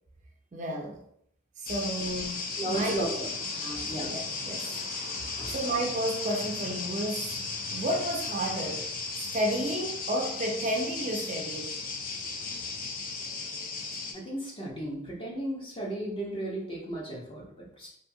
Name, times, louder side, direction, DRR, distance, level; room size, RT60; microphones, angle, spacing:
voice 1, 0.5-1.0 1.6-3.0 3.6-4.8 5.5-7.4 7.7-8.9 9.1-11.7, right 1 dB, 35° right, 1 dB, 0.4 m, -32 dB
sound 1, 1.7-14.1, left 4 dB, 45° left, 0.5 m, -35 dB
voice 2, 2.6-3.3 3.8-4.1 5.4-5.6 14.1-18.0, right 1 dB, 25° left, -4 dB, 0.9 m, -35 dB
3.5 x 2.7 x 2.6 m, 0.70 s
head